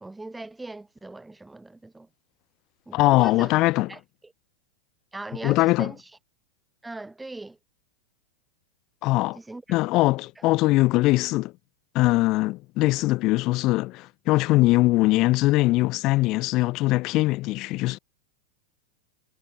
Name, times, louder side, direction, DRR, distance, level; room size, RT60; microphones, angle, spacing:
voice 1, 0.0-2.1 2.9-3.5 3.9-4.3 5.1-6.1 6.8-7.6 9.3-9.8 10.4-10.5, right 2 dB, 5° right, 1.1 m, -40 dB
voice 2, 2.9-3.9 5.4-5.9 9.0-9.4 9.7-11.5 11.9-18.0, left 20 dB, 30° left, 0.7 m, -21 dB
supercardioid pair, 175°, 0 cm